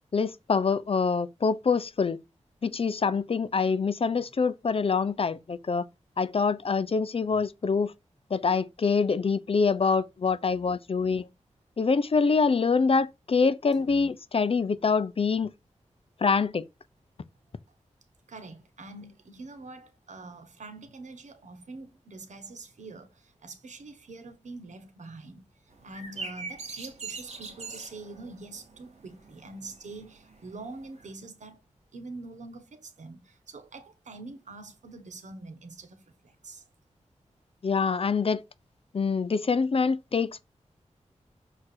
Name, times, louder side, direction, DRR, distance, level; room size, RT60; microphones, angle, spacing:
voice 1, 0.1-2.2 2.6-5.9 6.2-7.9 8.3-11.3 11.8-15.5 16.2-16.6 37.6-38.4 38.9-40.4, left 5 dB, 50° left, 0.7 m, -25 dB
voice 2, 18.3-25.5 25.8-31.6 31.9-36.6, right 3 dB, 90° right, 1.4 m, -45 dB
sound 1, 25.7-31.1, right 4 dB, 65° right, 2.9 m, -42 dB
6.5 x 4.9 x 4.4 m
wide cardioid pair, 105°, 12 cm